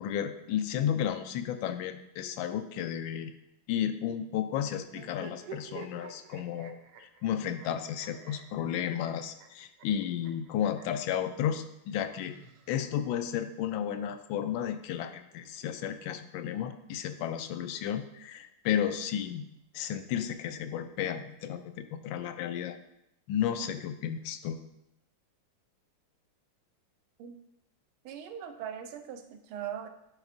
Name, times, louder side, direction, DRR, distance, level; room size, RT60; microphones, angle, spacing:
voice 1, 0.0-3.3 3.7-12.3 12.7-19.5 19.7-22.8 23.3-24.6, left 9 dB, 75° left, 9 dB, 1.3 m, -33 dB
sound 1, 4.9-11.1 12.0-13.2, right 7 dB, 65° right, 0.9 m, -50 dB
voice 2, 28.0-29.9, right 9 dB, 85° right, 7 dB, 1.5 m, -40 dB
11.0 x 5.0 x 2.6 m, 0.81 s
omnidirectional pair, 2.3 m